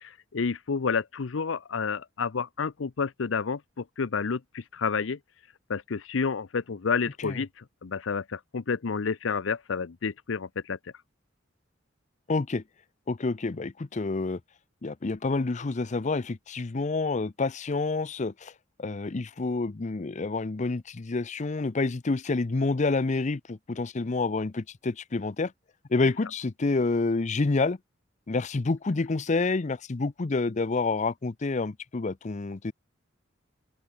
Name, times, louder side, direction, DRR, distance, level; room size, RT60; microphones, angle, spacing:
voice 1, 0.0-5.2 5.7-10.8, left 5 dB, 90° left, 0.6 m, -30 dB
voice 2, 12.3-12.6 13.1-14.4 14.8-18.5 18.8-25.5 25.9-27.8 28.3-32.7, left 3 dB, 40° left, 0.6 m, -28 dB
open air
head